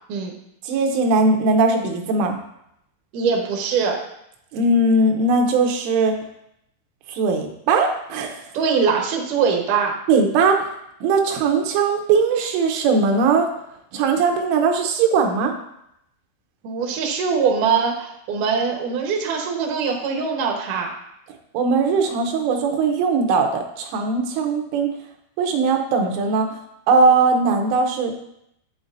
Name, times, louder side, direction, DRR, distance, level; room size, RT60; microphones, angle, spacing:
voice 1, 0.7-2.4 4.5-6.2 7.1-8.5 10.1-10.6 11.0-13.5 13.9-15.5 21.6-24.9 25.4-26.5 26.9-28.2, right 4 dB, 90° right, 4 dB, 3.4 m, -19 dB
voice 2, 3.1-4.0 8.5-9.9 16.6-20.9, right 5 dB, 70° right, 0 dB, 2.0 m, -22 dB
8.8 x 7.8 x 2.6 m, 0.78 s
omnidirectional pair, 5.5 m